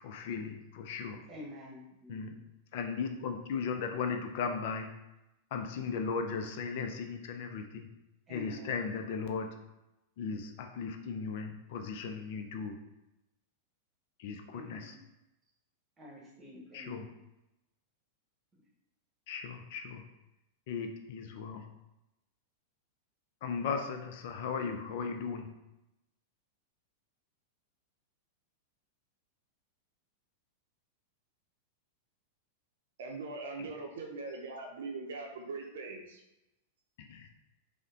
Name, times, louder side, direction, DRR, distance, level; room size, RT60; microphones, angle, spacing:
voice 1, 0.0-1.2 2.1-2.3 2.7-4.9 5.5-7.9 8.3-9.5 10.2-12.8 14.2-14.9 16.7-17.0 19.3-20.0 20.7-21.6 23.4-25.5 37.0-37.3, left 5 dB, 55° left, 5 dB, 0.4 m, -37 dB
voice 2, 1.3-2.4 8.3-8.8 14.5-15.0 16.0-17.2, left 1 dB, 20° right, -3 dB, 1.2 m, -48 dB
voice 3, 33.0-36.2, right 3 dB, 65° right, 1 dB, 0.6 m, -41 dB
4.8 x 2.1 x 2.7 m, 0.92 s
figure-of-eight pair, 95°, 0 cm